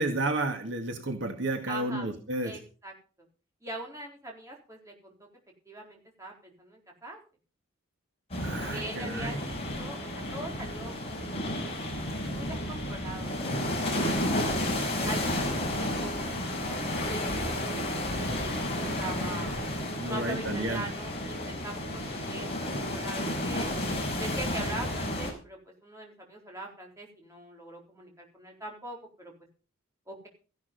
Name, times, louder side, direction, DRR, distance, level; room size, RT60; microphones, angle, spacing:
voice 1, 0.0-2.6 8.4-9.4 20.0-20.8, right 2 dB, 55° right, 5 dB, 2.0 m, -31 dB
voice 2, 1.7-2.1 2.4-2.9 3.6-5.1 5.7-7.2 8.7-14.7 15.1-17.8 18.2-19.6 20.1-23.7 24.2-29.3 30.1-30.3, right 1 dB, 15° right, -1 dB, 4.1 m, -42 dB
sound 1, 8.3-25.3, left 1 dB, 30° left, 5.3 m, -32 dB
15.0 x 11.0 x 5.4 m, 0.38 s
head